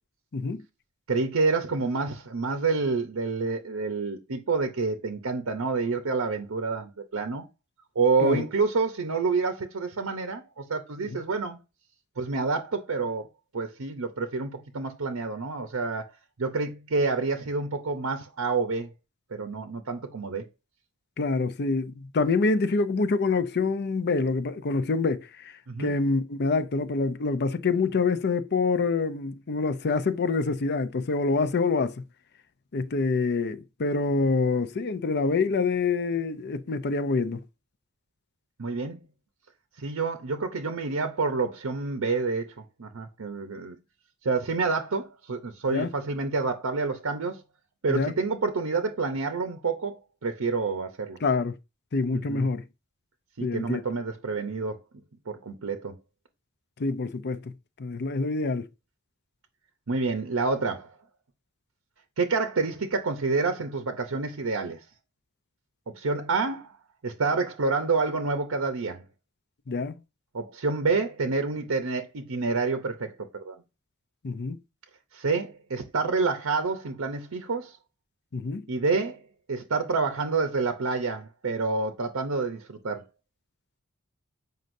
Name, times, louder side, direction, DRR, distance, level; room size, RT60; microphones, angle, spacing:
voice 1, 1.1-7.5 7.9-11.6 12.2-13.3 13.5-16.1 16.4-18.9 19.3-20.5 25.7-25.9 38.6-39.0 39.8-42.5 42.8-43.8 44.2-47.4 47.8-51.2 52.1-52.5 53.4-54.8 55.3-56.0 59.9-61.0 62.2-64.8 65.9-66.7 67.0-69.0 70.3-73.6 75.1-77.8 78.7-79.2 79.5-83.0, right 4 dB, 75° right, 0.7 m, -28 dB
voice 2, 21.2-25.5 25.8-32.0 32.7-37.4 45.7-45.9 47.9-48.1 51.2-51.5 51.9-52.6 53.4-53.8 56.8-57.5 57.8-58.7 69.7-69.9 74.2-74.6 78.3-78.7, left 4 dB, 50° left, 0.5 m, -26 dB
7.7 x 5.2 x 2.6 m
head